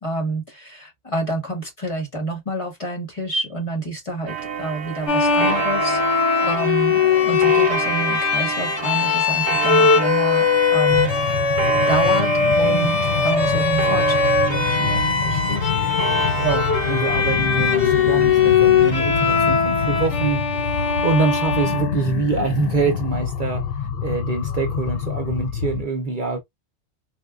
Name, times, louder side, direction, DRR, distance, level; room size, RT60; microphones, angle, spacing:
voice 1, 0.0-6.0 6.4-12.9 13.2-15.7, right 2 dB, 30° left, 1.3 m, -28 dB
Clock, 4.3-20.4, right 8 dB, 75° right, 0.9 m, -29 dB
Bowed string instrument, 5.1-22.5, left 6 dB, 80° left, 1.2 m, -20 dB
sound 1, 10.9-25.8, left 7 dB, 65° left, 0.7 m, -27 dB
voice 2, 16.4-26.4, right 4 dB, 50° right, 0.8 m, -25 dB
4.4 x 2.3 x 2.3 m
omnidirectional pair, 1.2 m